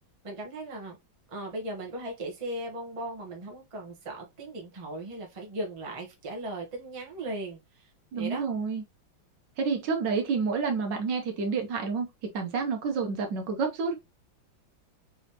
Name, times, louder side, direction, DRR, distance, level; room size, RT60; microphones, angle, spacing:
voice 1, 0.2-1.0 1.3-8.4, right 1 dB, 25° right, 0.8 m, -38 dB
voice 2, 8.1-8.8 9.6-12.1 12.3-13.9, right 5 dB, 65° right, 1.4 m, -29 dB
4.0 x 3.7 x 2.8 m
omnidirectional pair, 2.2 m